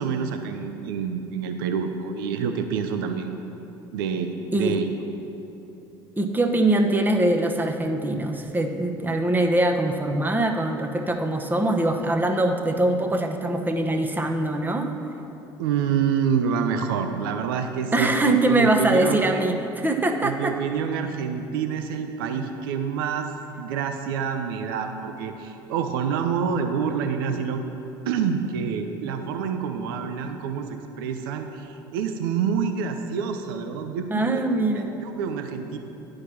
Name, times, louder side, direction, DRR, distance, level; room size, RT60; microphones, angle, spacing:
voice 1, 0.0-3.3 3.9-4.8 15.6-19.3 20.2-23.3 23.6-27.6 28.1-34.4 34.7-35.8, right 6 dB, 75° right, 6 dB, 0.6 m, -27 dB
voice 2, 6.2-14.9 17.9-20.5 34.1-34.9, right 2 dB, 15° right, 4 dB, 1.0 m, -23 dB
10.5 x 4.8 x 5.9 m, 3.0 s
hypercardioid pair, 65°, 12 cm